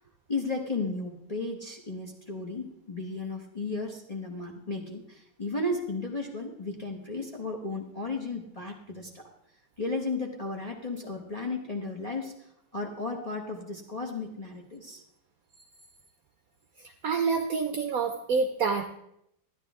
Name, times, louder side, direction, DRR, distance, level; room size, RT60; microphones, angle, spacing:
voice 1, 0.3-9.3 9.8-15.0, left 3 dB, 25° left, 1 dB, 0.8 m, -34 dB
voice 2, 17.0-18.9, right 5 dB, 65° right, 6 dB, 0.9 m, -27 dB
12.0 x 10.5 x 3.5 m, 0.79 s
omnidirectional pair, 2.1 m